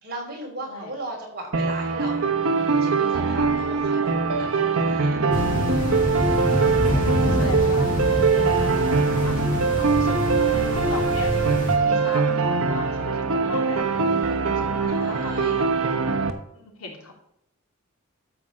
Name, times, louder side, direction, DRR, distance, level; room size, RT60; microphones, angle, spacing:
voice 1, 0.0-2.3 2.8-5.2 14.9-15.6, right 2 dB, 45° right, -2 dB, 4.1 m, -37 dB
sound 1, 1.5-16.3, right 4 dB, 75° right, 1.1 m, -22 dB
sound 2, 5.3-11.8, equal, 35° left, 2.4 m, -26 dB
voice 2, 6.1-11.5 11.8-15.7 16.5-17.1, left 3 dB, 80° left, 0 dB, 2.9 m, -38 dB
13.0 x 5.0 x 7.4 m, 0.76 s
head